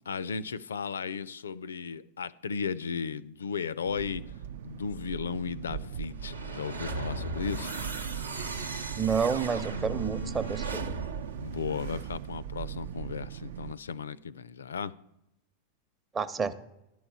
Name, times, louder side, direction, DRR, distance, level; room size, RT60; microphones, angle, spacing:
voice 1, 0.1-4.2 4.6-7.7 11.4-15.0, left 6 dB, 70° left, 20 dB, 0.3 m, -35 dB
sound 1, 3.8-13.7, right 9 dB, 55° right, 0.3 m, -40 dB
sound 2, 6.2-12.4, right 3 dB, 75° right, 0.8 m, -37 dB
voice 2, 9.0-11.0 16.1-16.5, right 6 dB, 20° right, 11 dB, 0.7 m, -29 dB
11.5 x 4.7 x 8.0 m, 0.89 s
figure-of-eight pair, 90°, 0 cm